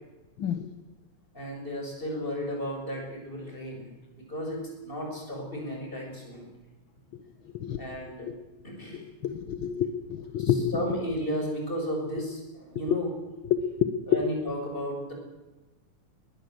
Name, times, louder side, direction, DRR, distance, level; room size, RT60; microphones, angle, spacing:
voice 1, 0.4-0.7 7.1-7.2 7.5-7.8 8.3-8.4 8.9-11.0 12.9-13.0 13.5-14.2, left 9 dB, 55° left, 10 dB, 1.5 m, -28 dB
voice 2, 1.3-6.5 7.8-8.3 8.6-9.1 10.4-13.1 14.1-15.1, equal, 15° left, 1 dB, 7.1 m, -34 dB
21.5 x 21.0 x 8.0 m, 1.1 s
omnidirectional pair, 3.3 m